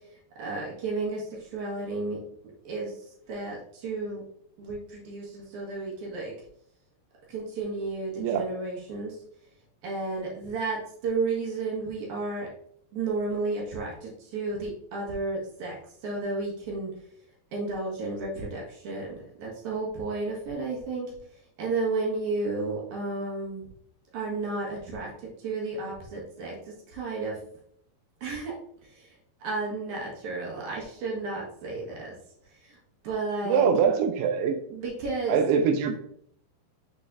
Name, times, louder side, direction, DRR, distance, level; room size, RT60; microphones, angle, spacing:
voice 1, 0.4-1.2 1.5-2.2 2.6-2.9 3.3-3.6 3.8-4.2 4.6-6.3 7.3-9.1 9.8-12.5 12.9-15.8 16.0-16.9 17.5-19.1 19.4-21.1 21.6-23.6 24.1-25.1 25.4-26.5 26.9-27.4 28.2-28.5 29.4-32.2 33.0-33.7 34.7-35.4, right 3 dB, 60° right, -3 dB, 2.4 m, -32 dB
voice 2, 8.2-8.5 33.4-34.6 35.3-36.0, right 6 dB, 90° right, 6 dB, 1.9 m, -23 dB
10.5 x 3.9 x 2.6 m, 0.67 s
omnidirectional pair, 4.7 m